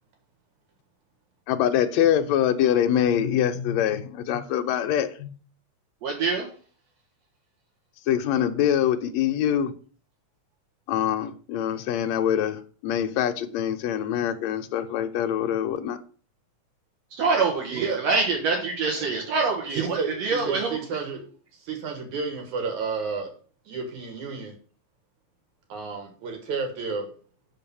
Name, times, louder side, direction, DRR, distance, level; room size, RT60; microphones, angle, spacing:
voice 1, 1.5-5.3 8.1-9.7 10.9-16.0, left 10 dB, 75° left, 8 dB, 2.0 m, -24 dB
voice 2, 6.0-6.5 17.1-20.8, right 4 dB, 65° right, 1 dB, 2.4 m, -25 dB
voice 3, 17.7-18.0 19.0-19.1 19.7-21.2 21.5-23.3 23.7-24.5 25.7-27.1, right 5 dB, 80° right, 4 dB, 3.1 m, -31 dB
6.6 x 5.4 x 7.0 m, 0.42 s
omnidirectional pair, 3.3 m